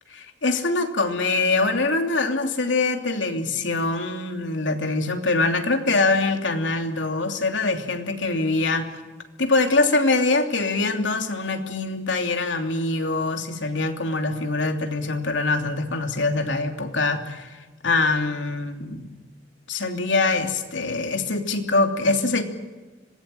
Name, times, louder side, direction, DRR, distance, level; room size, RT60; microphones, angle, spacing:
voice 1, 0.1-8.9 9.4-19.1 19.7-22.4, left 3 dB, 80° left, 5 dB, 2.9 m, -24 dB
26.0 x 20.0 x 9.2 m, 1.3 s
head